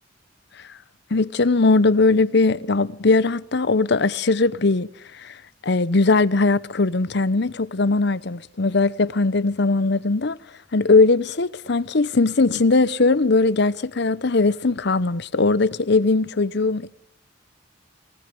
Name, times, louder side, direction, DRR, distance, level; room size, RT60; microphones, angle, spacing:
voice 1, 1.1-4.9 5.1-5.4 5.6-10.4 10.7-16.9, left 3 dB, 60° left, 0.8 m, -19 dB
20.0 x 19.0 x 7.0 m
head